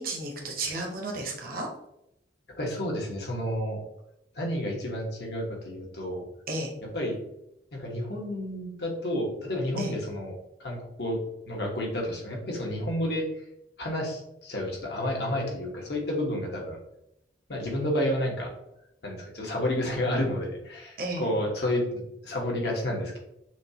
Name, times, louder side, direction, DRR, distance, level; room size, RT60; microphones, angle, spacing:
voice 1, 0.0-1.7 6.5-6.7 9.8-9.9 21.0-21.3, right 2 dB, 50° right, 0 dB, 0.9 m, -33 dB
voice 2, 2.6-3.8 4.3-6.2 6.8-7.2 7.7-10.3 10.6-11.2 11.5-13.3 13.8-16.8 17.5-18.5 19.0-23.2, left 1 dB, 65° left, -1 dB, 1.2 m, -30 dB
6.1 x 2.4 x 2.8 m, 0.81 s
head